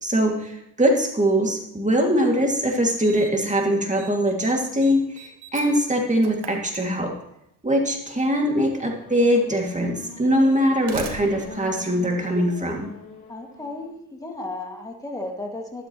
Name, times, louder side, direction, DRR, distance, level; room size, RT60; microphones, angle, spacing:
voice 1, 0.0-7.1 7.6-12.9, equal, 15° right, 1 dB, 2.4 m, -22 dB
Slam, 2.2-2.3 3.0-3.5 3.8-4.1 4.4-7.3 8.5-8.6 9.4-9.5 10.5-12.8, right 6 dB, 70° right, 1.3 m, -40 dB
Race car auto racing / Accelerating revving vroom, 8.7-13.9, left 4 dB, 60° left, 3.8 m, -42 dB
voice 2, 13.3-15.9, left 2 dB, 10° left, 1 dB, 2.1 m, -34 dB
12.0 x 8.2 x 3.1 m, 0.79 s
supercardioid pair, 55°, 41 cm